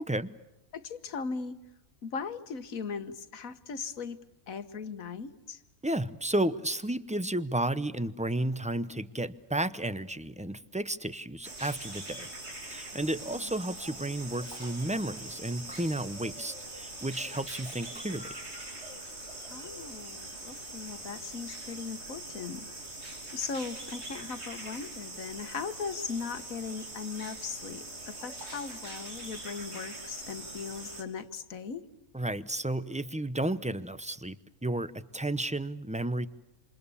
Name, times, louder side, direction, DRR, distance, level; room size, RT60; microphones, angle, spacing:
voice 1, 0.7-1.6 2.0-4.2 4.5-5.6 13.3-13.5 19.5-22.7 23.3-31.8, left 5 dB, 70° left, 11 dB, 1.6 m, -38 dB
voice 2, 5.8-12.3 12.7-18.4 32.1-34.4 34.6-36.3, right 1 dB, 5° right, 14 dB, 0.5 m, -32 dB
sound 1, 11.4-31.0, right 2 dB, 50° right, 3.7 m, -43 dB
28.0 x 27.5 x 7.1 m, 0.97 s
omnidirectional pair, 1.5 m